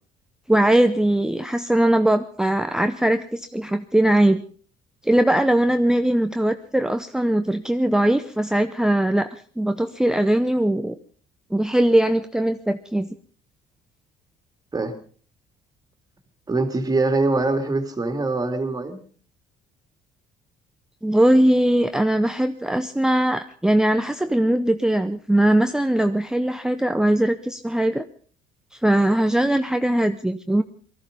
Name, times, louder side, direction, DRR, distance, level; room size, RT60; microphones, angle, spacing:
voice 1, 0.5-4.4 5.0-9.3 9.6-10.9 11.5-13.2 21.0-28.0 28.7-30.6, right 1 dB, 5° right, 8 dB, 0.7 m, -20 dB
voice 2, 16.5-19.0, right 3 dB, 20° right, 8 dB, 2.5 m, -23 dB
19.0 x 14.0 x 5.2 m, 0.43 s
cardioid pair, 110°, 17 cm